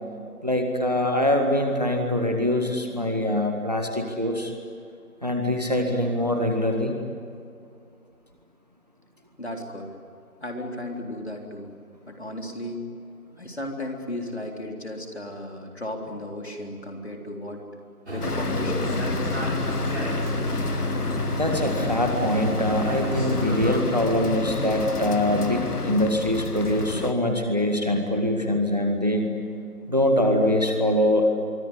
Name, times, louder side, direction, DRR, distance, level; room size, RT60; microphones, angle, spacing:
voice 1, 0.4-4.5 5.2-6.9 21.4-29.3 29.9-31.3, left 1 dB, 25° right, 4 dB, 1.7 m, -23 dB
voice 2, 9.4-9.9 10.4-11.7 12.1-12.9 13.4-17.7 18.1-19.2, left 1 dB, 45° left, 2 dB, 3.7 m, -35 dB
sound 1, 18.1-23.8, left 1 dB, 45° right, 4.8 m, -29 dB
sound 2, 18.2-27.1, left 4 dB, 90° left, 1.2 m, -31 dB
25.0 x 24.0 x 9.9 m, 2.4 s
figure-of-eight pair, 175°, 45 cm